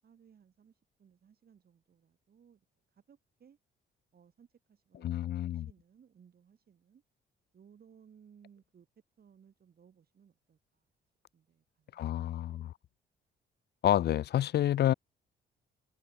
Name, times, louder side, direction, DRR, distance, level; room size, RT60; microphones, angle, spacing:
voice 1, 0.0-3.6 4.1-7.0 7.5-8.9 9.2-10.9 11.3-12.3 12.5-12.7, right 7 dB, 50° right, 6.1 m, -62 dB
voice 2, 5.0-5.7 11.9-12.7 13.8-14.9, left 12 dB, 55° left, 0.5 m, -29 dB
cardioid pair, 90°, 20 cm